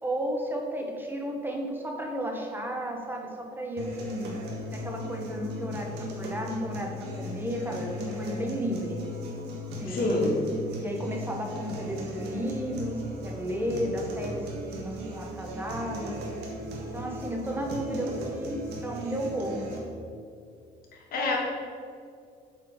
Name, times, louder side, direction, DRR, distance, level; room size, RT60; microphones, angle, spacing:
voice 1, 0.0-4.4 4.7-9.0 9.8-10.3 10.8-16.2 16.9-19.6, equal, 10° right, 1 dB, 1.3 m, -33 dB
sound 1, 3.8-19.8, equal, 80° right, 1.6 m, -37 dB
voice 2, 9.9-10.4 21.1-21.4, left 2 dB, 60° left, -2 dB, 2.1 m, -26 dB
7.8 x 4.9 x 5.3 m, 2.4 s
cardioid pair, 110°, 17 cm